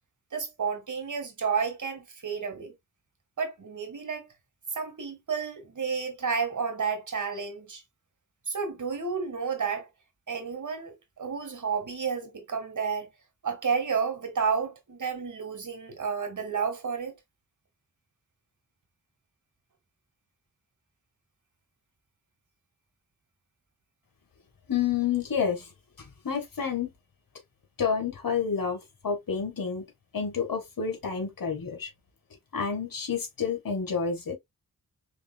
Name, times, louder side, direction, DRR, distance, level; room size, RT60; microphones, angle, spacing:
voice 1, 0.3-2.7 3.4-4.3 4.7-7.8 8.5-9.9 10.3-13.1 13.4-17.1, right 5 dB, 55° right, 1.7 m, -31 dB
voice 2, 24.7-25.7 26.2-26.9 27.8-29.8 30.1-31.9 32.5-34.4, left 6 dB, 70° left, 1.8 m, -29 dB
4.8 x 3.7 x 2.2 m
cardioid pair, 60°, 35 cm